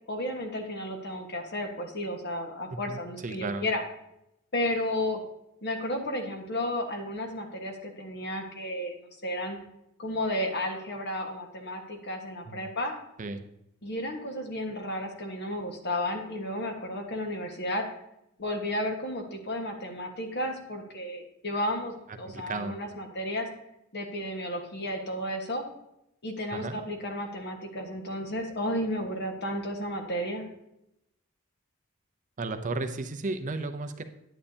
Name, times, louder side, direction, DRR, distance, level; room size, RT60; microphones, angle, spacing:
voice 1, 0.1-3.8 4.5-5.2 5.6-9.6 10.0-12.9 13.8-17.8 18.4-23.5 23.9-25.6 26.2-30.5, left 1 dB, 50° left, 3 dB, 1.4 m, -33 dB
voice 2, 2.9-3.7 12.5-12.7 13.2-13.5 22.2-22.8 26.5-26.8 32.4-34.0, right 3 dB, 35° right, 8 dB, 0.5 m, -34 dB
9.9 x 9.1 x 2.8 m, 0.82 s
head